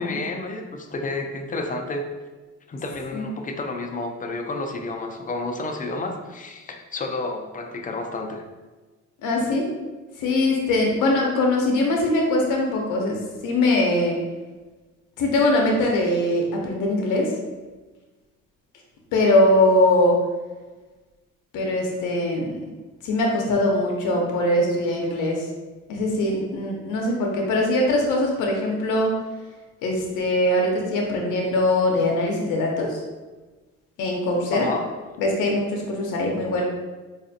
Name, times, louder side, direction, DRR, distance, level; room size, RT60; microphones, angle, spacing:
voice 1, 0.0-2.0 2.7-8.4 34.5-34.9, left 2 dB, 25° left, 4 dB, 0.4 m, -30 dB
voice 2, 9.2-9.7 10.2-14.2 15.2-17.3 19.1-20.2 21.5-22.6 23.0-25.5 25.9-29.2 29.8-33.0 34.0-34.7 35.2-36.6, left 1 dB, 85° left, 0 dB, 0.7 m, -22 dB
4.1 x 2.4 x 2.6 m, 1.3 s
cardioid pair, 90°, 30 cm